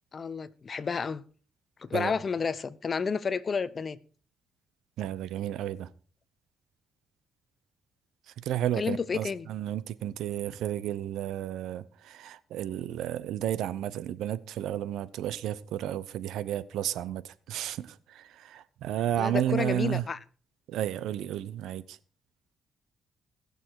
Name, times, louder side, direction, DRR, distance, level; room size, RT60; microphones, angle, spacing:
voice 1, 0.1-1.2 1.8-4.0 8.8-9.5 19.2-20.2, left 5 dB, 40° left, 0.8 m, -31 dB
voice 2, 5.0-5.9 8.4-20.1 20.7-22.0, right 11 dB, 85° right, 0.7 m, -32 dB
20.0 x 6.8 x 4.7 m
cardioid pair, 90°, 0 cm